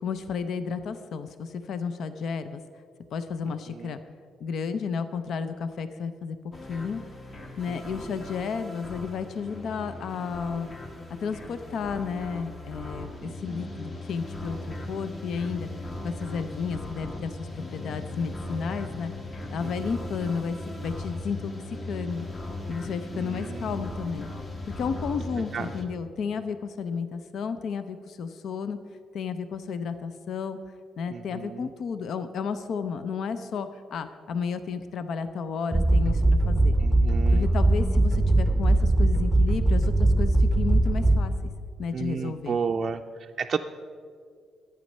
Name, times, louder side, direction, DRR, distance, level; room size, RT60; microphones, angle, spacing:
voice 1, 0.0-2.6 3.1-4.0 4.4-6.4 6.7-7.0 7.6-10.7 11.2-15.7 16.0-19.1 19.5-22.3 22.7-24.3 24.8-28.8 29.1-30.6 31.0-36.8 37.3-41.3 41.8-42.6, left 6 dB, 65° left, 11 dB, 0.5 m, -32 dB
sound 1, 6.5-25.8, left 2 dB, 40° left, 1.7 m, -38 dB
voice 2, 7.7-8.0 13.2-13.6 19.6-20.1 23.1-23.9 25.5-25.7 31.1-31.7 36.8-37.5 41.9-43.6, right 6 dB, 45° right, 3 dB, 0.4 m, -33 dB
sound 2, 35.7-41.5, right 2 dB, 10° right, 0.7 m, -21 dB
11.5 x 8.9 x 5.3 m, 2.2 s
cardioid pair, 90°, 0 cm